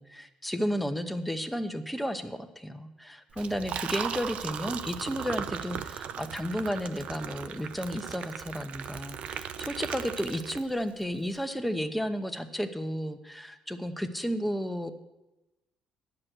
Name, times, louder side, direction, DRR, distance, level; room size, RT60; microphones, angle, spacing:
voice 1, 0.0-14.9, equal, ahead, 7 dB, 1.0 m, -33 dB
Liquid, 3.3-11.0, right 8 dB, 65° right, 0.5 m, -37 dB
9.8 x 6.1 x 7.9 m, 1.0 s
supercardioid pair, 75°, 2 cm